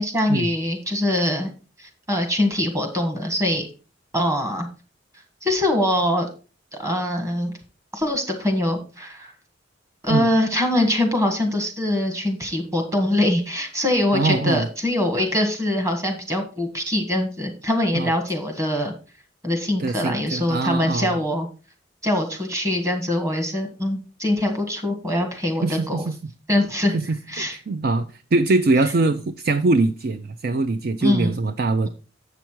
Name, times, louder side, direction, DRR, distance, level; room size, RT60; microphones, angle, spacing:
voice 1, 0.0-1.5 1.8-3.7 4.1-4.7 5.4-6.3 6.8-7.5 7.9-9.3 10.0-18.9 19.4-21.5 22.0-26.0 26.5-27.0 27.3-27.6 31.0-31.3, left 1 dB, 15° right, 1.7 m, -23 dB
voice 2, 14.1-14.7 17.9-18.1 19.8-21.1 25.6-26.1 26.9-27.0 27.4-28.1 28.3-31.9, right 3 dB, 50° right, 0.5 m, -22 dB
8.0 x 5.9 x 4.6 m
head